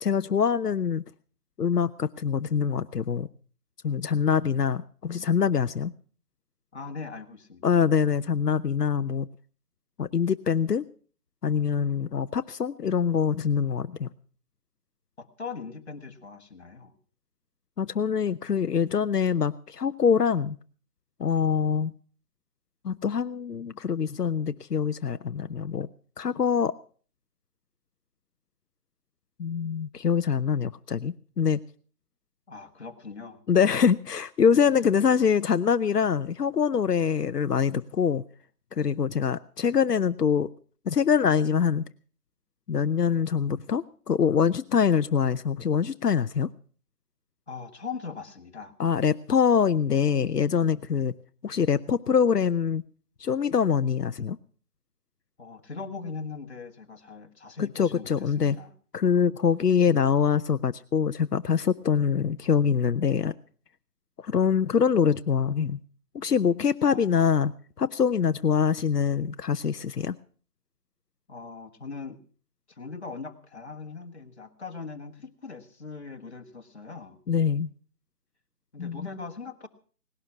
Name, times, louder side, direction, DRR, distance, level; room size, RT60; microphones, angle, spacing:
voice 1, 0.0-1.0 1.6-3.3 3.8-5.9 7.6-9.3 10.0-10.8 11.4-14.1 17.8-20.6 21.2-21.9 22.8-25.9 26.2-26.7 29.4-31.6 33.5-38.2 38.7-40.5 40.9-41.8 42.7-46.5 48.8-51.1 51.4-52.8 53.2-54.4 57.8-58.6 58.9-63.3 64.2-65.8 66.1-70.2 77.3-77.7 78.8-79.1, left 7 dB, 85° left, 12 dB, 0.8 m, -24 dB
voice 2, 6.7-7.7 15.2-16.9 32.5-33.4 35.0-35.1 47.5-48.7 55.4-58.7 66.8-67.1 71.3-72.2 72.7-77.2 78.7-79.7, left 4 dB, 45° left, 4 dB, 1.7 m, -40 dB
18.0 x 12.0 x 5.8 m, 0.43 s
figure-of-eight pair, 165°, 47 cm